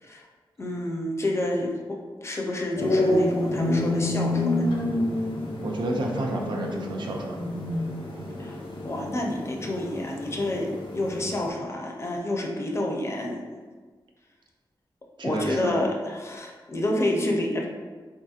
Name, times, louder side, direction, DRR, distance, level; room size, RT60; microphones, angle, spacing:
voice 1, 0.6-4.7 8.4-13.4 15.2-17.6, left 1 dB, 30° left, 0 dB, 0.4 m, -29 dB
sound 1, 2.8-11.5, left 1 dB, 75° left, 0.6 m, -28 dB
voice 2, 5.6-7.4 8.2-8.4 15.2-15.8, right 1 dB, 60° right, 0 dB, 0.4 m, -30 dB
3.9 x 2.7 x 2.4 m, 1.4 s
wide cardioid pair, 125°, 9 cm